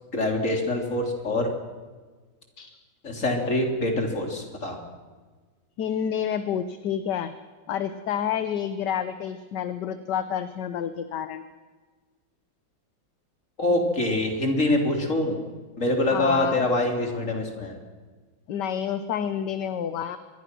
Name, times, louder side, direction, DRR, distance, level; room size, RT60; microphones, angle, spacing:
voice 1, 0.1-1.5 3.0-4.8 13.6-15.4 15.8-17.8, left 2 dB, 40° left, 2 dB, 3.9 m, -25 dB
voice 2, 5.8-7.3 7.7-11.4 16.1-16.6 18.5-20.2, left 9 dB, 65° left, 11 dB, 1.5 m, -29 dB
25.0 x 22.0 x 6.2 m, 1.4 s
omnidirectional pair, 2.1 m